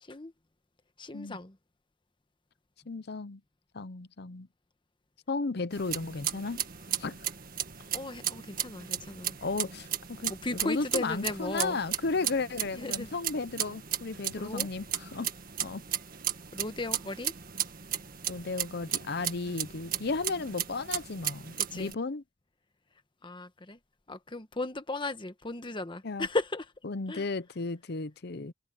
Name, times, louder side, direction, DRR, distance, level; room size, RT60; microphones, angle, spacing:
voice 1, 0.0-0.3 1.0-1.6 7.9-9.4 10.3-11.8 12.7-13.2 14.4-14.7 16.5-17.3 21.6-22.0 23.2-23.8 24.1-26.7 27.1-27.3, left 2 dB, 25° left, 1.2 m, -36 dB
voice 2, 2.9-3.4 3.7-4.5 5.3-6.6 7.0-7.2 9.4-15.3 15.6-15.8 18.3-22.2 26.0-26.3 26.9-28.5, left 3 dB, 55° left, 0.7 m, -34 dB
sound 1, 5.7-21.9, right 10 dB, 45° right, 1.8 m, -35 dB
head